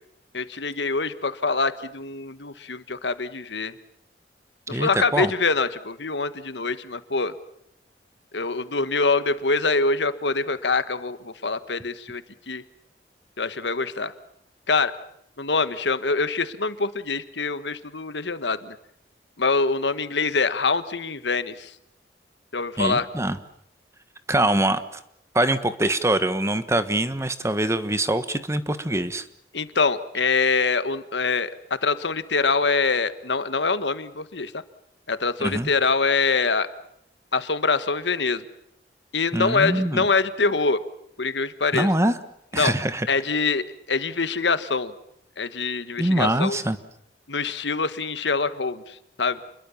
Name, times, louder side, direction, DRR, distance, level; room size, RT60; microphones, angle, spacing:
voice 1, 0.3-3.7 4.7-7.3 8.3-12.6 13.4-14.1 14.7-14.9 15.4-18.7 19.4-21.7 22.5-23.1 29.5-34.5 35.1-36.7 37.3-38.5 39.1-40.8 41.2-41.9 42.5-42.7 43.1-44.9 45.4-46.6 47.3-49.4, left 4 dB, 85° left, 12 dB, 1.5 m, -24 dB
voice 2, 4.7-5.3 22.8-23.4 24.3-24.8 25.3-29.2 35.4-35.7 39.3-40.0 41.7-42.2 42.5-43.1 46.0-46.8, right 1 dB, 15° right, 11 dB, 1.3 m, -23 dB
28.5 x 22.0 x 7.2 m, 0.76 s
head